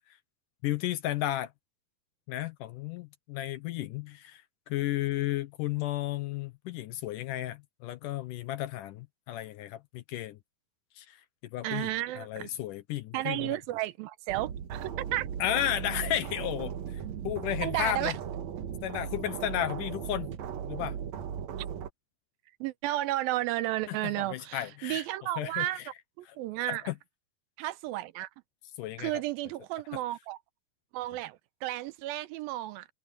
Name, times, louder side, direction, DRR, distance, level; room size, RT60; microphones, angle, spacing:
voice 1, 0.6-1.5 2.3-4.4 4.7-10.4 11.0-11.2 11.5-11.9 12.2-13.4 15.4-18.1 18.8-20.3 20.7-21.0 23.9-25.0 25.4-25.7 26.7-26.9 28.8-29.1, left 13 dB, 75° left, 2.1 m, -33 dB
voice 2, 11.6-12.5 13.1-15.3 17.6-18.2 22.6-25.8 26.2-26.8 27.6-28.3 29.0-30.4 30.9-32.9, right 16 dB, 80° right, 2.5 m, -33 dB
sound 1, 14.3-21.9, right 8 dB, 60° right, 2.1 m, -37 dB
omnidirectional pair, 4.2 m